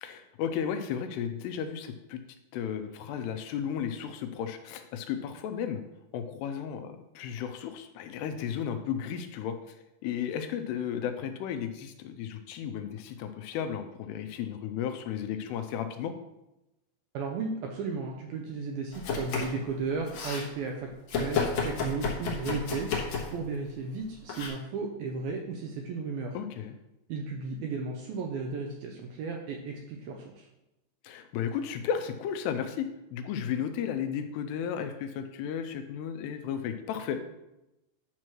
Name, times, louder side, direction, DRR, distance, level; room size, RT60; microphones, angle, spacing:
voice 1, 0.0-2.2 2.5-5.8 6.1-9.8 10.0-16.1 26.3-26.8 31.0-37.2, left 8 dB, 85° left, 8 dB, 2.5 m, -34 dB
voice 2, 17.1-22.9 23.3-26.4 27.1-30.5, right 4 dB, 80° right, 1 dB, 2.2 m, -34 dB
Domestic sounds home sounds, 18.9-19.6 19.9-20.5 21.1-23.4 24.3-24.5, left 5 dB, 65° left, 1.8 m, -31 dB
10.0 x 6.0 x 3.1 m, 0.94 s
omnidirectional pair, 5.0 m